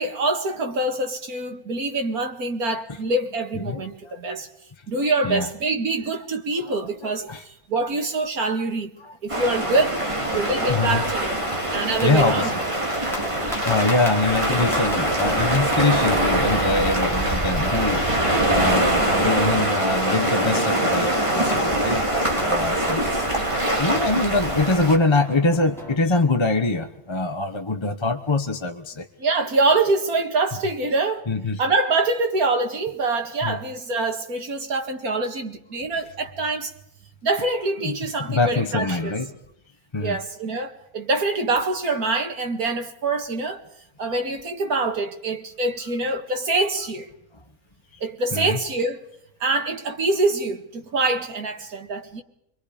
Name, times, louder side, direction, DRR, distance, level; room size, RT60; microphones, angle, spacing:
voice 1, 0.0-4.5 4.9-8.9 9.2-10.0 10.3-11.3 11.7-12.5 13.3-13.6 29.2-31.3 31.6-36.7 37.2-39.2 40.0-43.6 44.0-47.1 48.0-49.0 49.4-52.2, right 3 dB, 85° right, 2.4 m, -25 dB
voice 2, 3.5-4.4 5.2-5.5 6.6-6.8 7.0-7.4 9.0-9.1 10.7-11.0 12.0-12.5 13.6-18.1 18.4-21.1 21.3-22.0 22.4-23.3 23.8-29.1 31.3-31.6 33.4-33.6 37.8-38.0 38.3-39.3 39.9-40.2 47.9-48.0 48.3-48.6, left 3 dB, 20° left, 1.1 m, -23 dB
sound 1, 9.3-25.0, right 1 dB, 20° right, 2.7 m, -23 dB
sound 2, 9.7-26.0, equal, ahead, 5.6 m, -36 dB
30.0 x 22.5 x 5.1 m
omnidirectional pair, 1.5 m